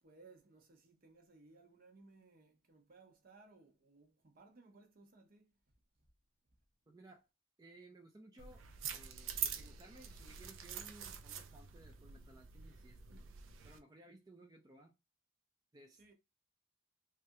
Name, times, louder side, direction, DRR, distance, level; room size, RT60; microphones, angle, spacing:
voice 1, 0.0-5.5 16.0-16.1, right 3 dB, 50° right, 0.8 m, -62 dB
voice 2, 6.9-7.2 7.6-8.6 8.9-13.2 13.6-14.9 15.7-16.1, right 2 dB, 20° right, 0.4 m, -59 dB
sound 1, 8.4-13.8, right 7 dB, 75° right, 0.5 m, -45 dB
3.3 x 2.4 x 2.6 m
head